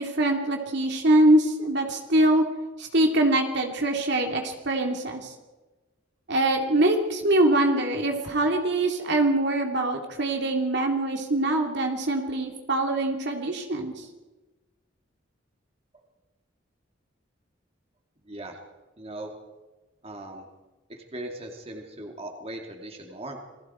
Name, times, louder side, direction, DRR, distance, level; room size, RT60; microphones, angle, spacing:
voice 1, 0.0-2.4 2.8-5.3 6.3-13.9, right 1 dB, 65° right, 2 dB, 2.9 m, -23 dB
voice 2, 18.2-18.6 19.0-19.3 20.0-20.5 20.9-23.4, right 1 dB, 35° right, 2 dB, 2.8 m, -39 dB
28.5 x 21.0 x 4.6 m, 1.2 s
head